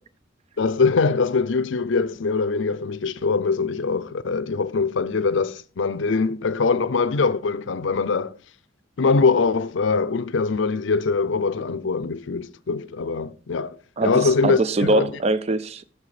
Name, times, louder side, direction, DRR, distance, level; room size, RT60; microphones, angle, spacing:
voice 1, 0.6-8.4 9.0-15.1, left 4 dB, 75° left, 0.6 m, -23 dB
voice 2, 14.0-15.9, right 2 dB, 35° right, 0.4 m, -22 dB
9.1 x 6.3 x 4.9 m
head